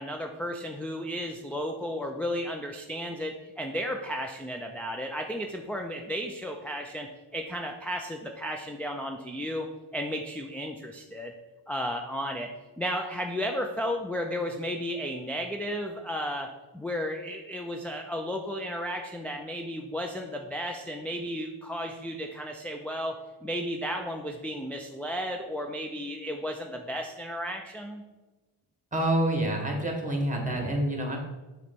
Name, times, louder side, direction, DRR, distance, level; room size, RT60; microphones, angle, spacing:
voice 1, 0.0-9.7 9.9-11.3 11.7-12.5 12.8-28.0, equal, 5° left, 1 dB, 0.3 m, -34 dB
voice 2, 28.9-31.2, right 1 dB, 15° right, 2 dB, 1.4 m, -27 dB
6.7 x 3.2 x 5.2 m, 1.1 s
wide cardioid pair, 105°, 49 cm